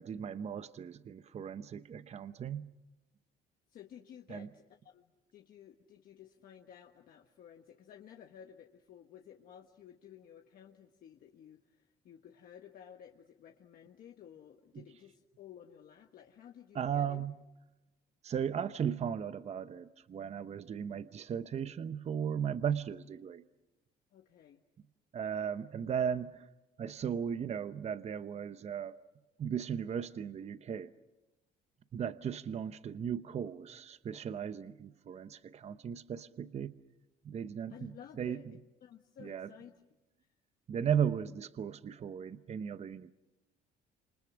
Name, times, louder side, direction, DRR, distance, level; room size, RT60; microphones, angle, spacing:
voice 1, 0.0-2.7 4.3-4.5 16.7-17.4 18.2-23.4 25.1-26.4 26.8-28.9 29.4-30.9 31.9-36.8 37.2-38.4 39.2-39.5 40.7-43.1, right 8 dB, 40° right, 12 dB, 0.8 m, -36 dB
voice 2, 3.7-17.2 24.1-24.6 37.7-38.4 38.8-39.8, left 9 dB, 60° left, 3 dB, 1.4 m, -54 dB
28.0 x 27.0 x 6.2 m, 1.0 s
cardioid pair, 110°, 17 cm